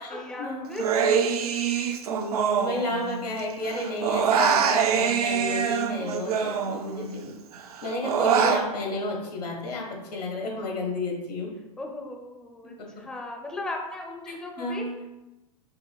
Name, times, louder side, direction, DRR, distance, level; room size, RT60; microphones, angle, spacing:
voice 1, 0.0-1.3 6.7-7.4 11.8-14.9, left 2 dB, 5° left, 1 dB, 0.4 m, -37 dB
Human voice, 0.8-3.4 3.7-7.2 7.5-8.6, right 7 dB, 70° right, 0.4 m, -25 dB
voice 2, 1.4-7.4 7.8-11.5 12.8-12.9 14.3-15.0, left 1 dB, 85° left, 0 dB, 1.2 m, -32 dB
4.7 x 3.1 x 2.2 m, 1.0 s
hypercardioid pair, 100°, 20 cm